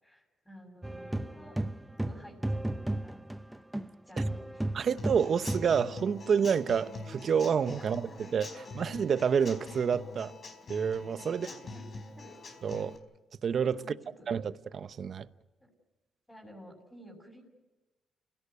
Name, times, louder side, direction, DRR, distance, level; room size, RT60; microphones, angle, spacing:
voice 1, 0.0-1.6 2.0-3.2 4.0-4.9 6.8-6.9 7.8-8.2 11.3-11.9 12.1-12.3 13.7-14.3 15.6-15.7 16.3-17.4, equal, 10° left, 6.7 m, -53 dB
sound 1, 0.8-3.9 4.2-5.8, right 1 dB, 5° right, 0.8 m, -34 dB
voice 2, 4.7-10.3 10.7-11.5 12.6-13.0 13.4-13.8 14.3-15.3, right 7 dB, 50° right, 0.8 m, -29 dB
Human voice / Acoustic guitar / Drum, 5.0-13.0, left 3 dB, 45° left, 4.5 m, -45 dB
29.0 x 17.0 x 8.3 m
cardioid pair, 90°, 0 cm